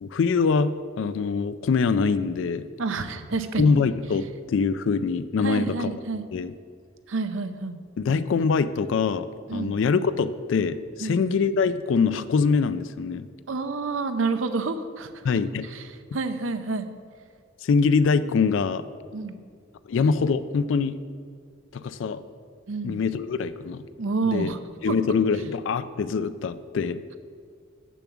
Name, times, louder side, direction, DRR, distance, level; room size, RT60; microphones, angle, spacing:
voice 1, 0.0-2.7 3.6-5.9 6.3-6.5 8.0-13.3 15.2-15.7 17.6-18.8 19.9-21.0 21.7-22.2 22.8-23.8 24.3-24.5 24.8-27.0, left 5 dB, 65° left, 12 dB, 0.3 m, -24 dB
voice 2, 2.8-3.6 5.4-6.3 7.1-7.8 9.5-9.8 11.0-11.2 13.5-15.1 15.7-15.8 16.1-16.9 19.1-19.4 22.7-23.0 24.0-24.6 24.9-25.0, right 4 dB, 70° right, 10 dB, 0.6 m, -28 dB
7.0 x 6.0 x 7.1 m, 2.2 s
head